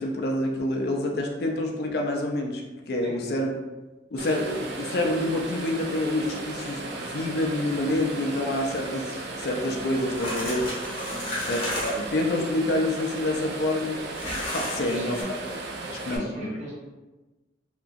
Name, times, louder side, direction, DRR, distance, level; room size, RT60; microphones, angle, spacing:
voice 1, 0.0-3.5 4.1-10.7 11.5-14.1 14.5-15.2 15.9-16.5, left 1 dB, 55° left, 1 dB, 0.4 m, -27 dB
voice 2, 3.0-3.4 11.0-11.5 14.7-15.3 16.0-16.7, equal, 40° right, -7 dB, 1.0 m, -40 dB
sound 1, 4.2-16.2, right 2 dB, 65° right, 0.4 m, -36 dB
sound 2, 9.9-12.1 14.1-15.2, left 1 dB, 30° left, 0.7 m, -33 dB
2.8 x 2.5 x 2.3 m, 1.1 s
head